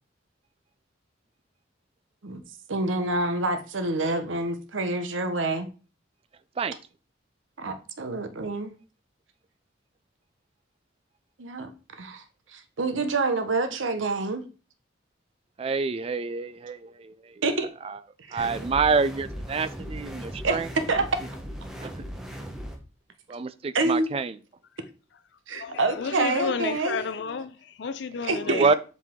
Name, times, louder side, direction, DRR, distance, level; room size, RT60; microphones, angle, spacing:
voice 1, 2.7-5.7 7.6-8.7 11.4-11.7 12.0-12.2 12.5-14.4 17.4-17.7 18.3-18.5 20.4-21.1 23.7-24.1 25.5-27.0 28.2-28.7, right 3 dB, 85° right, 0.9 m, -27 dB
voice 2, 15.6-17.1 18.3-20.7 21.8-21.9 23.3-24.3 28.6-28.7, right 4 dB, 30° right, 0.3 m, -26 dB
sound 1, 18.4-22.8, equal, 5° right, 1.0 m, -38 dB
voice 3, 25.5-28.7, left 5 dB, 60° left, 0.4 m, -32 dB
7.3 x 4.0 x 3.6 m
head